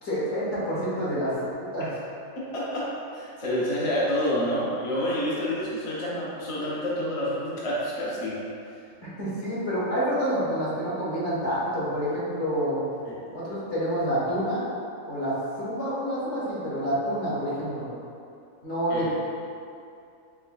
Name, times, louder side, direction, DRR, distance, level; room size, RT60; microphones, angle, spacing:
voice 1, 0.0-2.1 9.2-12.8 13.3-14.6 15.1-17.8 18.6-19.1, equal, 60° left, -9 dB, 1.5 m, -28 dB
voice 2, 2.4-8.4 8.7-8.8 13.1-13.2 18.9-19.1, equal, 35° left, -7 dB, 0.6 m, -28 dB
4.6 x 3.5 x 2.3 m, 2.6 s
omnidirectional pair, 1.4 m